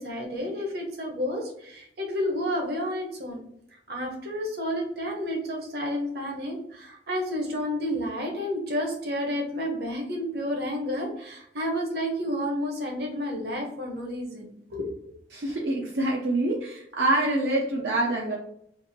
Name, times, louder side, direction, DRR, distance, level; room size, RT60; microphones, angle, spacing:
voice 1, 0.0-3.4 3.9-15.1, equal, 65° right, 0 dB, 1.0 m, -31 dB
voice 2, 15.3-18.4, right 2 dB, 80° right, -2 dB, 0.6 m, -26 dB
3.5 x 2.5 x 4.1 m, 0.70 s
head